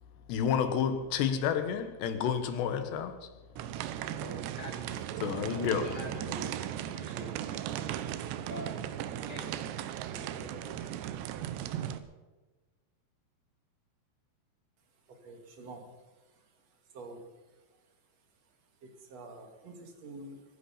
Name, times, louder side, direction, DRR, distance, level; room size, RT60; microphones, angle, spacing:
voice 1, 0.3-3.3 5.2-5.9, left 7 dB, 80° left, 9 dB, 3.5 m, -30 dB
sound 1, 3.6-12.0, right 11 dB, 90° right, 3.1 m, -37 dB
voice 2, 4.1-4.9 5.5-6.6 6.9-7.7 8.4-8.9 9.3-9.5 10.1-10.9, left 1 dB, 50° left, 2 dB, 1.2 m, -45 dB
voice 3, 15.2-15.8 16.9-17.2 19.1-20.4, right 2 dB, 45° right, 4 dB, 2.6 m, -46 dB
23.0 x 10.5 x 5.7 m, 1.2 s
omnidirectional pair, 4.9 m